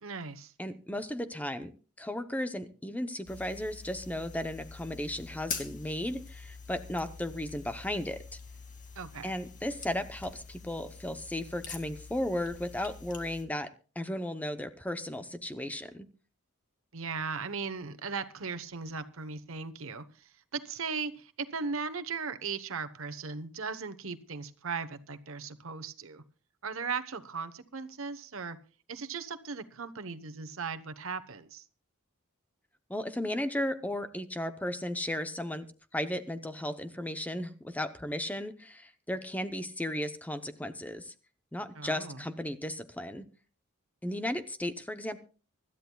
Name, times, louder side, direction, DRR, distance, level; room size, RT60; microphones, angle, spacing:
voice 1, 0.0-0.5 9.0-9.3 16.9-26.2 26.6-28.6 28.9-31.6 41.8-42.2, right 5 dB, 65° right, 9 dB, 1.1 m, -38 dB
voice 2, 0.6-1.7 2.0-8.2 9.2-13.7 14.0-16.1 32.9-35.7 35.9-41.1 41.5-43.2 44.0-45.2, left 1 dB, 5° left, 9 dB, 0.7 m, -35 dB
sound 1, 3.3-13.4, left 5 dB, 35° left, 2.2 m, -45 dB
25.0 x 12.5 x 2.3 m, 0.36 s
head